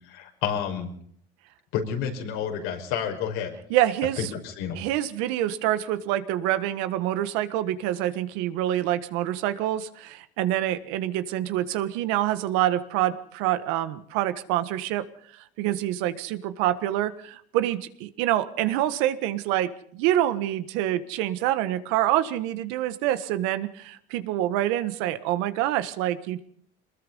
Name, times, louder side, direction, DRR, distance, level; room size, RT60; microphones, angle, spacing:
voice 1, 0.1-0.9 1.7-3.5 4.2-4.8, left 8 dB, 80° left, 3 dB, 5.3 m, -30 dB
voice 2, 3.7-4.3 4.7-15.0 15.6-26.4, right 13 dB, 80° right, 12 dB, 1.6 m, -26 dB
23.5 x 20.5 x 5.5 m, 0.64 s
supercardioid pair, 105°, 21 cm